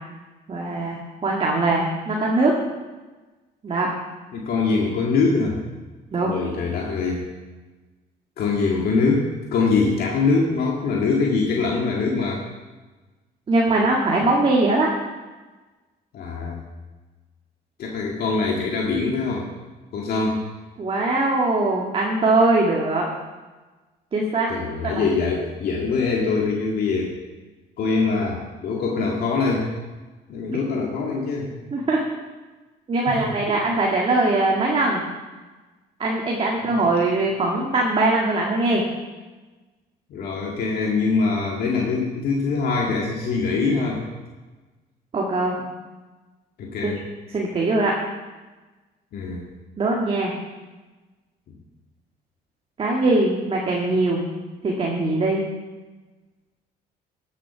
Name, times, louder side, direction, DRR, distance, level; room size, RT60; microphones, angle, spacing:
voice 1, 0.5-2.5 3.6-3.9 6.1-6.3 13.5-14.9 20.8-23.1 24.1-24.5 24.8-25.1 31.7-32.0 32.9-35.0 36.0-38.8 45.1-45.6 46.8-46.9 47.3-48.0 49.8-50.3 52.8-54.2 54.6-55.4, right 2 dB, 35° right, -2 dB, 1.9 m, -21 dB
voice 2, 4.3-5.6 6.2-7.3 8.4-12.4 16.1-16.6 17.8-19.5 19.9-20.4 24.5-27.2 27.8-29.7 30.3-31.5 33.1-33.4 36.6-36.8 40.1-44.0 46.6-47.0 49.1-49.5, left 4 dB, 65° left, -2 dB, 2.0 m, -23 dB
12.5 x 7.6 x 6.0 m, 1.2 s
cardioid pair, 110°, 17 cm